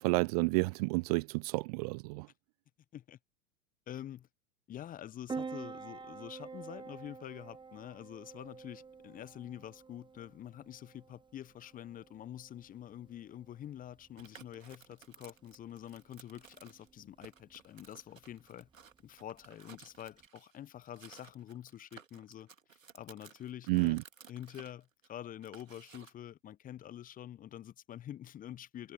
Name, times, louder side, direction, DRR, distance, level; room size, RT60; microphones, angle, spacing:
voice 1, 0.0-2.3 23.7-24.0, right 28 dB, 30° right, 0.4 m, -30 dB
voice 2, 3.9-4.3 4.7-18.7 19.0-22.5 22.9-24.0 24.3-28.9, left 11 dB, 20° left, 0.8 m, -47 dB
Piano, 5.3-20.3, right 5 dB, 10° right, 1.5 m, -49 dB
sound 1, 14.2-16.9 17.2-20.6 20.9-26.2, right 6 dB, 80° right, 2.4 m, -57 dB
figure-of-eight pair, 95°, 39 cm